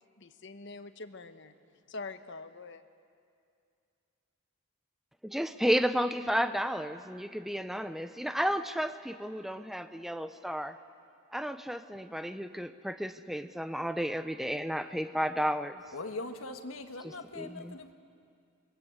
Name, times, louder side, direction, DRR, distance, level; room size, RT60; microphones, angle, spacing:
voice 1, 0.2-1.5 1.9-2.8, left 3 dB, 60° left, 9 dB, 1.1 m, -44 dB
voice 2, 5.2-10.8 11.3-15.8 17.0-17.8, equal, ahead, 10 dB, 0.7 m, -32 dB
voice 3, 15.9-17.9, left 2 dB, 80° left, 6 dB, 1.6 m, -41 dB
27.5 x 22.5 x 8.1 m, 2.4 s
head